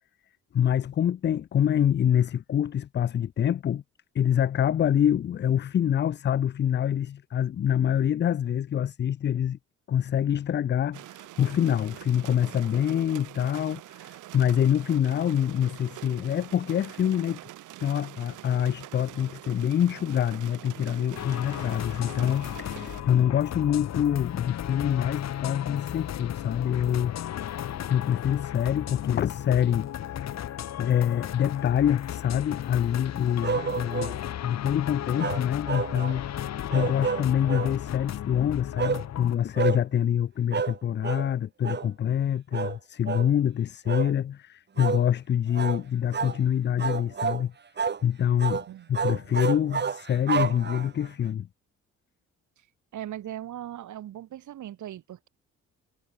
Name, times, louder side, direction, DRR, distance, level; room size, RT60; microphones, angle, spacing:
voice 1, 0.5-3.8 4.1-9.6 9.9-17.4 17.8-27.2 27.9-34.2 34.4-47.5 48.0-51.5, left 9 dB, 35° left, 0.5 m, -26 dB
sound 1, 10.9-23.0, right 15 dB, 90° right, 3.4 m, -45 dB
sound 2, 21.1-39.3, left 11 dB, 60° left, 1.3 m, -35 dB
sound 3, 33.4-34.2 35.2-36.2 36.7-37.7 38.8-39.0 39.6-39.8 40.5-40.8 41.0-41.3 41.6-41.9 42.5-42.8 43.1-43.3 43.9-44.1 44.8-45.0 45.5-45.8 46.1-46.4 46.8-47.4 47.8-48.0 48.4-48.7 48.9-51.1, right 6 dB, 35° right, 1.8 m, -29 dB
voice 2, 52.9-55.3, right 12 dB, 75° right, 6.1 m, -39 dB
cardioid pair, 90°, 30 cm